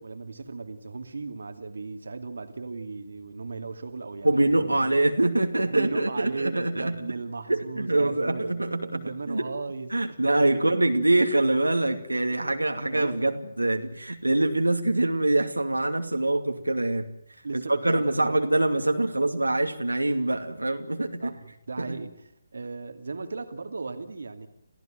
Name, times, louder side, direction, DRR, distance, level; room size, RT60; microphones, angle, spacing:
voice 1, 0.0-4.9 5.6-8.7 8.9-10.2 10.5-10.7 12.3-12.4 12.9-13.3 17.4-18.4 21.2-24.5, right 3 dB, 70° right, 7 dB, 2.5 m, -36 dB
voice 2, 4.2-7.0 7.5-9.5 9.9-17.1 17.5-21.3 21.8-22.0, right 2 dB, 90° right, 4 dB, 2.5 m, -24 dB
28.5 x 16.5 x 9.3 m, 0.74 s
figure-of-eight pair, 145°, 0 cm